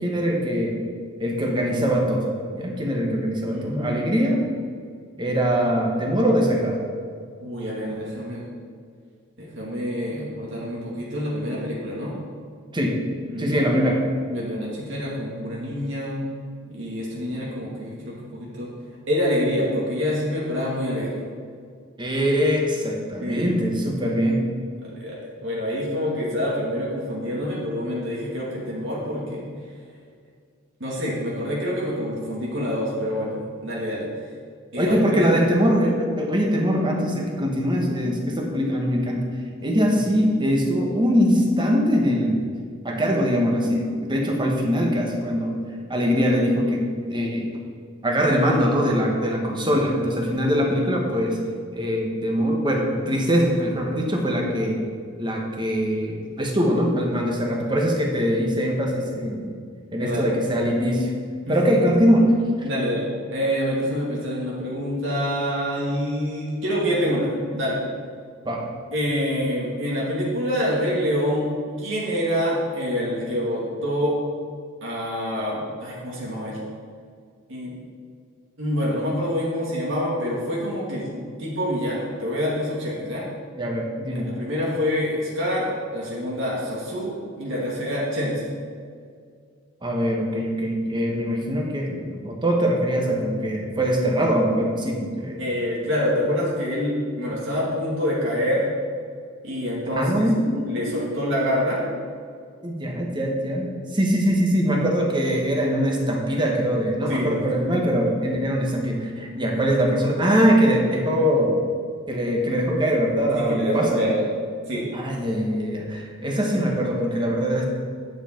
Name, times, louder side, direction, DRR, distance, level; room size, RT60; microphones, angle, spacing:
voice 1, 0.0-0.8 1.2-4.4 5.2-6.8 12.7-13.0 13.4-14.0 22.0-24.4 34.8-39.2 39.6-42.4 42.8-45.6 45.9-47.5 48.0-51.4 51.7-54.8 55.2-59.5 59.9-61.1 61.5-62.3 68.4-68.6 83.6-84.4 89.8-95.4 100.0-101.1 102.6-111.6 112.1-114.0 114.9-117.6, equal, 25° right, 0 dB, 1.4 m, -22 dB
voice 2, 3.5-4.1 7.4-8.4 9.4-12.2 13.3-13.8 14.3-16.2 16.7-18.7 19.1-21.2 23.2-23.5 24.8-29.4 30.8-34.1 34.7-35.5 39.9-40.0 59.9-60.6 61.5-61.8 62.6-67.8 68.9-71.5 71.8-74.2 74.8-76.6 77.5-77.7 78.6-83.2 84.1-88.6 95.4-98.6 99.4-100.3 100.7-101.9 107.1-107.6 113.3-114.2 114.7-114.9, equal, 65° right, -5 dB, 2.1 m, -26 dB
10.0 x 7.0 x 4.5 m, 2.1 s
head